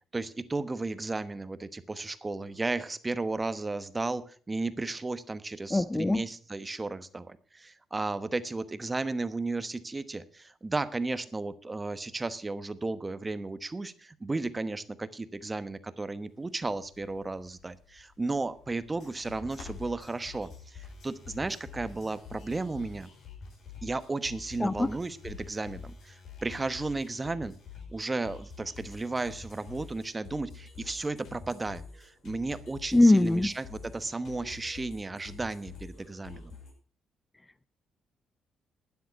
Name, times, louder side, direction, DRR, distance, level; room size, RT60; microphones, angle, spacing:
voice 1, 0.1-23.1 23.8-27.6 27.9-36.5, right 3 dB, 20° right, 12 dB, 1.1 m, -34 dB
voice 2, 5.7-6.2 24.6-24.9 32.9-33.5, left 2 dB, 15° left, 15 dB, 0.4 m, -22 dB
Crackle, 16.3-25.5, left 4 dB, 90° left, 7.3 m, -57 dB
sound 1, 18.9-36.7, left 5 dB, 70° left, 5.6 m, -47 dB
12.0 x 9.4 x 5.8 m, 0.43 s
cardioid pair, 90°, 0 cm